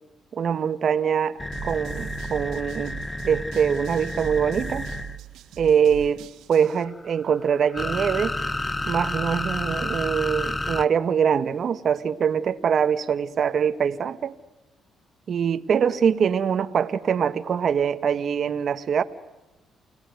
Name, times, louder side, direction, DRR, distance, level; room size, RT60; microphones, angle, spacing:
voice 1, 0.3-3.0 3.2-4.9 5.6-8.3 8.9-14.3 15.3-19.0, right 7 dB, 55° right, 9 dB, 1.3 m, -23 dB
sound 1, 1.4-5.2 6.6-10.8, left 2 dB, 15° left, 0.8 m, -30 dB
sound 2, 1.5-6.8, right 11 dB, 85° right, 1.8 m, -41 dB
30.0 x 18.0 x 9.4 m, 1.1 s
cardioid pair, 90°, 0 cm